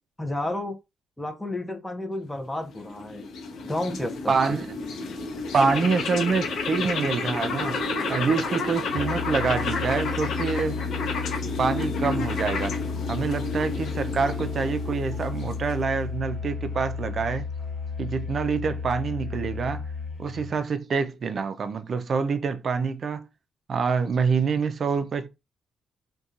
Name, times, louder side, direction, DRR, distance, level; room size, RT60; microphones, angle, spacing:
voice 1, 0.2-0.8 1.2-3.3 3.6-4.6, left 1 dB, 10° left, 0.6 m, -31 dB
sound 1, 2.5-16.0, left 4 dB, 70° left, 0.6 m, -31 dB
voice 2, 4.3-4.7 5.5-7.8 8.1-10.8 11.6-12.7 13.1-17.5 18.0-19.8 20.2-23.3 23.7-25.3, right 5 dB, 50° right, 0.4 m, -26 dB
Musical instrument, 8.9-20.6, left 5 dB, 35° left, 1.3 m, -33 dB
2.7 x 2.2 x 2.4 m
cardioid pair, 90°, 0 cm